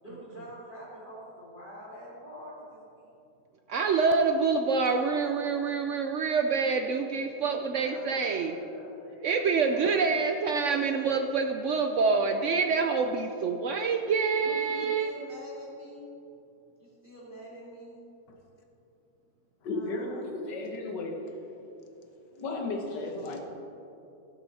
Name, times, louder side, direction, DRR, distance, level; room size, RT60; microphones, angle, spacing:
voice 1, 0.0-3.1 7.4-10.0 10.5-10.7 14.4-16.1 16.8-18.0 19.7-20.4 23.1-23.4, left 1 dB, 30° left, -9 dB, 3.2 m, -46 dB
voice 2, 3.7-8.5 9.2-15.1, right 4 dB, 70° right, 5 dB, 0.7 m, -26 dB
voice 3, 19.6-21.4 22.3-23.4, left 2 dB, 85° left, 3 dB, 1.9 m, -34 dB
17.0 x 7.0 x 4.1 m, 2.9 s
omnidirectional pair, 1.8 m